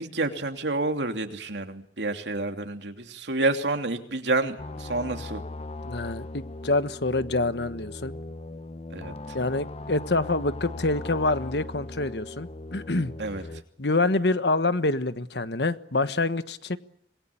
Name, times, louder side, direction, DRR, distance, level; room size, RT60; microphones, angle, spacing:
voice 1, 0.0-5.4 8.9-9.1 13.2-13.4, right 2 dB, 80° right, 6 dB, 2.9 m, -29 dB
sound 1, 4.6-13.6, left 2 dB, 35° left, 1.0 m, -39 dB
voice 2, 5.8-8.1 9.3-13.1 13.8-16.8, left 2 dB, 70° left, 12 dB, 1.3 m, -26 dB
26.5 x 20.5 x 8.5 m, 0.75 s
head